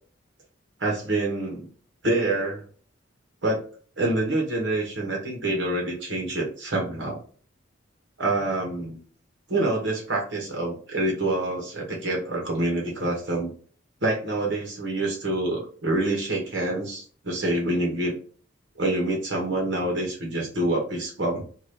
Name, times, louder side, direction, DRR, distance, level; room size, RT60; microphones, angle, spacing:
voice 1, 0.8-1.7 2.0-2.6 3.4-3.6 4.0-7.2 8.2-9.0 9.5-13.5 14.0-18.1 18.8-21.4, right 2 dB, 65° right, -1 dB, 1.0 m, -26 dB
2.8 x 2.3 x 3.2 m, 0.43 s
head